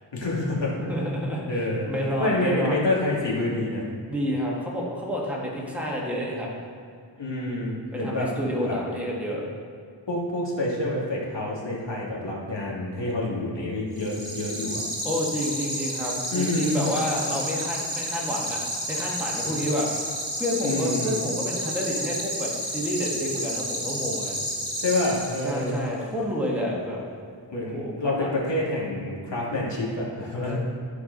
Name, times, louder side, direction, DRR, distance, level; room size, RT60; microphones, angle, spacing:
voice 1, 0.1-0.8 1.5-1.9 2.2-3.8 7.2-8.3 8.6-8.8 10.1-14.8 16.3-16.8 20.6-21.2 24.8-25.8 27.5-30.6, left 2 dB, 75° left, -4 dB, 2.2 m, -27 dB
voice 2, 0.8-1.4 1.8-2.8 4.1-6.5 7.9-9.4 15.0-18.6 18.9-20.1 20.4-24.4 25.4-27.0 27.6-27.9 28.2-28.3 30.4-30.6, equal, 5° right, -4 dB, 1.7 m, -29 dB
sound 1, 13.9-25.8, equal, 70° right, 1.7 m, -31 dB
13.5 x 4.7 x 4.0 m, 2.3 s
wide cardioid pair, 90°, 44 cm